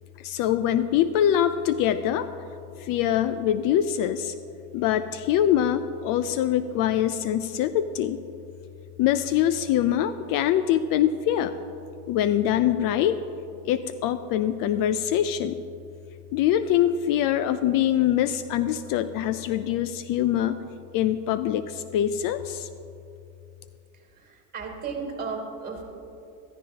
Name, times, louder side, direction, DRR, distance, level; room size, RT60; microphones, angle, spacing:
voice 1, 0.2-2.3 2.8-4.3 4.7-8.2 9.0-11.5 12.1-13.2 13.7-15.6 16.3-20.5 20.9-22.7, left 10 dB, 55° left, 12 dB, 0.5 m, -24 dB
voice 2, 23.9-25.8, right 5 dB, 25° right, 1 dB, 3.2 m, -35 dB
15.5 x 13.5 x 2.9 m, 2.7 s
supercardioid pair, 115°, 41 cm